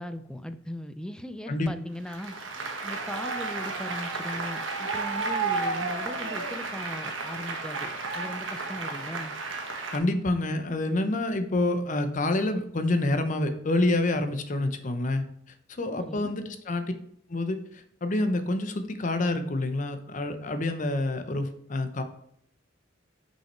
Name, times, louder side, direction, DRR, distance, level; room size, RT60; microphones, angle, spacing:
voice 1, 0.0-2.4 2.8-9.3 16.0-16.3, left 1 dB, 5° left, 9 dB, 0.4 m, -39 dB
Applause, 2.1-10.0, right 3 dB, 85° right, 1.1 m, -32 dB
voice 2, 9.9-15.2 15.7-16.9 17.3-22.0, left 2 dB, 40° left, 9 dB, 0.7 m, -27 dB
5.9 x 5.6 x 4.3 m, 0.70 s
head